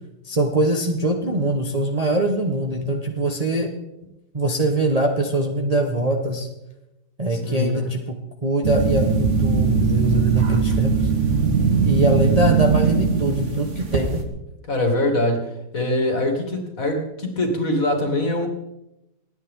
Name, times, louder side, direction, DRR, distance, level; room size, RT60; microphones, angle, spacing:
voice 1, 0.2-3.7 4.3-6.5 7.2-8.2 8.4-10.9 11.8-14.2, right 2 dB, 25° right, 2 dB, 1.2 m, -22 dB
voice 2, 7.3-7.9 14.7-15.5 15.7-18.5, left 1 dB, 45° left, 3 dB, 2.9 m, -23 dB
sound 1, 8.6-14.2, right 5 dB, 40° right, 1.9 m, -20 dB
27.5 x 9.7 x 3.8 m, 0.92 s
omnidirectional pair, 2.0 m